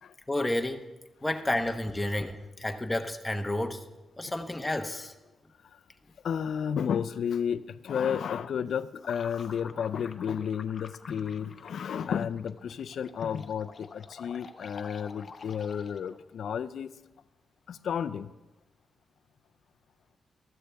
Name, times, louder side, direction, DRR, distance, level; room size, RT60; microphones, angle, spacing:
voice 1, 0.3-0.8 1.2-3.8 4.2-5.1, left 1 dB, 10° left, 5 dB, 0.9 m, -30 dB
voice 2, 6.2-16.9 17.7-18.3, left 8 dB, 75° left, 13 dB, 0.4 m, -32 dB
sound 1, 9.0-16.2, left 5 dB, 45° left, 0.8 m, -48 dB
15.0 x 13.0 x 3.4 m, 1.1 s
cardioid pair, 115°, 0 cm